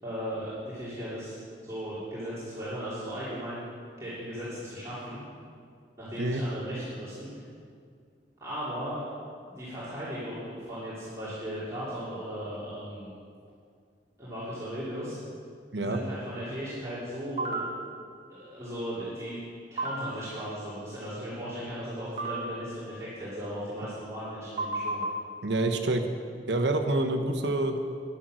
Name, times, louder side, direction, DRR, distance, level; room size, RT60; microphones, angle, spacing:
voice 1, 0.0-1.4 1.6-3.7 4.0-5.2 6.0-7.3 8.4-9.0 9.5-13.1 14.2-15.2 15.8-17.7 18.5-19.4 19.7-25.0, equal, 15° right, -12 dB, 2.8 m, -37 dB
sound 1, 17.4-17.6 19.8-19.9 22.2-22.3 24.6-25.1, right 3 dB, 35° right, 1.3 m, -30 dB
voice 2, 25.4-26.0 26.5-27.8, right 2 dB, 85° right, 6 dB, 1.1 m, -27 dB
11.0 x 10.5 x 6.3 m, 2.2 s
head